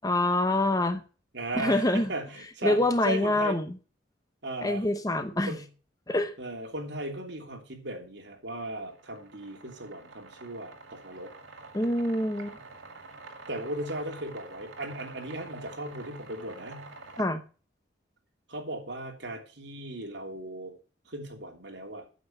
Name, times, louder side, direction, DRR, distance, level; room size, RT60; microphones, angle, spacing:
voice 1, 0.0-1.0 1.5-2.1 2.6-3.7 4.6-5.6 6.1-6.3 11.7-12.6 17.2-17.4, left 1 dB, 20° left, 10 dB, 0.8 m, -26 dB
voice 2, 1.3-3.6 4.4-4.8 5.5-5.6 6.4-11.3 13.5-16.9 18.5-20.7 21.1-22.0, right 1 dB, 65° right, 2 dB, 3.2 m, -37 dB
sound 1, 8.5-17.2, right 3 dB, 85° right, 2.3 m, -47 dB
9.1 x 7.7 x 6.6 m, 0.36 s
head